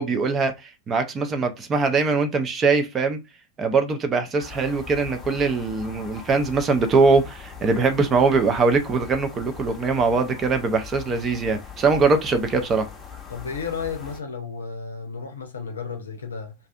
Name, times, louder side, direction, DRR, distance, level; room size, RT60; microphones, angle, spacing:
voice 1, 0.0-3.2 3.6-12.9, right 4 dB, 25° right, 0.5 m, -22 dB
sound 1, 4.4-14.2, left 6 dB, 15° left, 0.8 m, -41 dB
voice 2, 13.3-16.5, left 5 dB, 70° left, 0.6 m, -33 dB
2.5 x 2.4 x 2.3 m
figure-of-eight pair, 90°, 0 cm